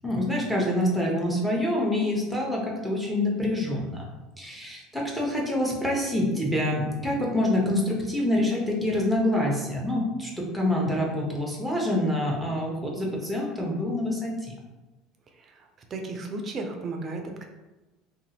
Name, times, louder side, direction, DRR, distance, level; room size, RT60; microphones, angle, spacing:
voice 1, 0.0-4.1 4.4-14.5, left 1 dB, ahead, -2 dB, 0.9 m, -26 dB
voice 2, 15.3-17.5, right 3 dB, 40° right, 3 dB, 0.5 m, -35 dB
2.7 x 2.4 x 2.8 m, 1.1 s
hypercardioid pair, 75°, 0 cm